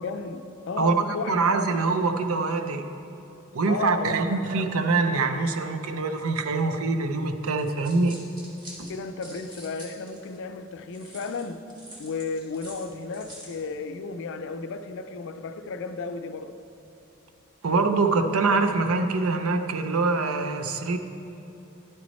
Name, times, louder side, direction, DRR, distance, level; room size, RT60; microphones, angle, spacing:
voice 1, 0.0-1.4 3.7-4.4 8.9-11.7 12.0-16.6, left 4 dB, 60° left, 0.4 m, -33 dB
voice 2, 1.3-2.8 3.5-8.2 8.8-8.9 17.6-21.0, right 3 dB, 85° right, 0.6 m, -24 dB
sound 1, 7.6-10.4 10.9-13.6, equal, 20° right, 1.6 m, -46 dB
10.5 x 6.2 x 4.1 m
head